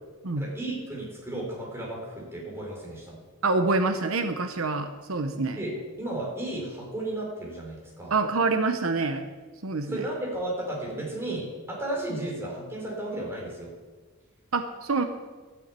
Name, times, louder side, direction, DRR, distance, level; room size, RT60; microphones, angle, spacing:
voice 1, 0.4-3.1 5.6-8.1 9.9-13.7, right 1 dB, 10° right, -4 dB, 4.3 m, -34 dB
voice 2, 3.4-5.6 8.1-9.2 9.6-10.0 14.5-15.0, right 3 dB, 85° right, 7 dB, 0.9 m, -26 dB
12.5 x 7.1 x 8.4 m, 1.3 s
head